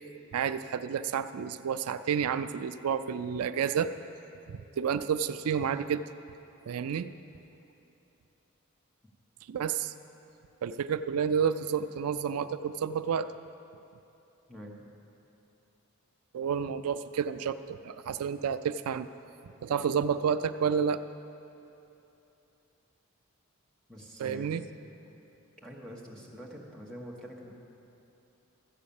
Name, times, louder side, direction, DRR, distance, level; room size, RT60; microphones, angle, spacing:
voice 1, 0.3-3.9 4.5-6.0 6.7-7.1 9.5-9.9 10.6-13.3 16.3-19.1 19.6-21.0 24.2-24.6, right 7 dB, 90° right, 12 dB, 0.4 m, -30 dB
voice 2, 14.5-14.8 23.9-24.7 25.6-27.5, equal, 5° left, -3 dB, 1.3 m, -45 dB
13.5 x 8.4 x 7.0 m, 2.9 s
head